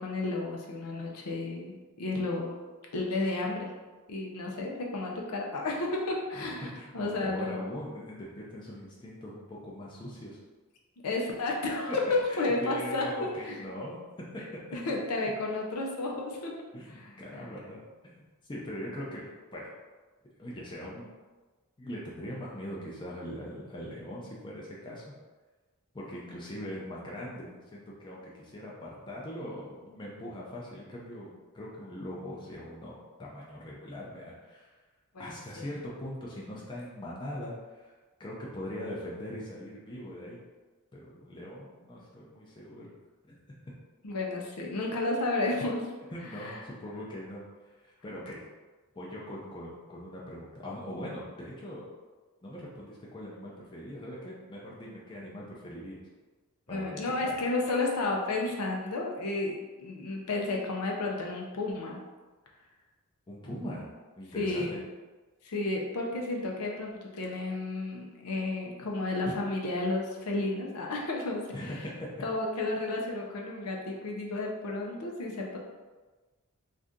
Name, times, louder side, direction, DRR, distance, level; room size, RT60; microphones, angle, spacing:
voice 1, 0.0-2.6 2.9-3.7 4.1-7.7 11.0-13.6 14.7-16.5 17.0-17.5 35.1-35.6 44.0-45.9 46.4-46.6 56.7-62.0 64.4-64.8 65.4-71.6 72.2-75.6, left 2 dB, 90° left, -1 dB, 0.6 m, -32 dB
voice 2, 6.3-10.4 11.9-12.0 12.3-14.0 15.1-15.3 16.7-19.7 20.4-21.1 21.8-25.1 25.9-34.8 35.2-37.9 38.2-40.4 40.9-42.9 43.3-43.4 46.1-47.4 47.7-48.4 48.9-51.8 52.4-56.0 56.7-57.3 63.3-63.9 64.2-64.8 71.5-72.1, equal, 20° left, -5 dB, 0.4 m, -41 dB
2.7 x 2.4 x 3.5 m, 1.3 s
head